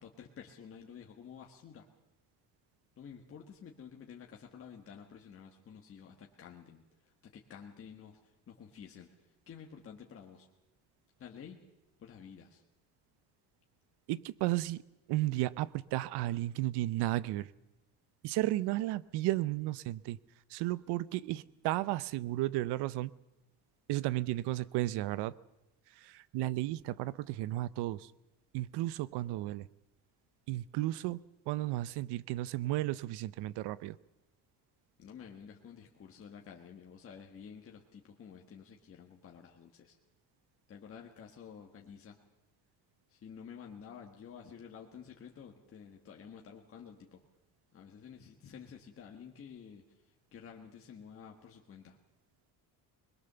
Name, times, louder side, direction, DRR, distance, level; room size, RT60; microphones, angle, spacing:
voice 1, 0.0-1.9 3.0-10.5 11.2-11.6 12.0-12.6 35.0-40.0 40.7-42.2 43.1-47.2 47.7-52.0, left 7 dB, 35° left, 1 dB, 1.7 m, -51 dB
voice 2, 14.1-14.8 15.1-17.5 18.2-20.2 20.5-23.1 23.9-25.3 26.0-28.1 28.5-29.7 30.5-34.0, right 16 dB, 90° right, 18 dB, 0.8 m, -33 dB
21.5 x 21.5 x 6.9 m, 0.99 s
cardioid pair, 160°, 39 cm